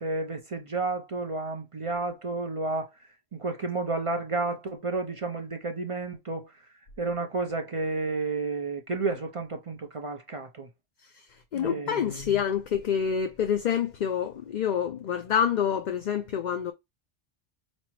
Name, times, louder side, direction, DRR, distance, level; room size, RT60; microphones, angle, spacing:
voice 1, 0.0-2.9 3.3-6.5 7.0-10.7 11.5-12.2, right 3 dB, 45° right, 0.5 m, -31 dB
voice 2, 11.5-16.7, left 8 dB, 55° left, 0.5 m, -27 dB
5.2 x 2.0 x 2.9 m
omnidirectional pair, 1.1 m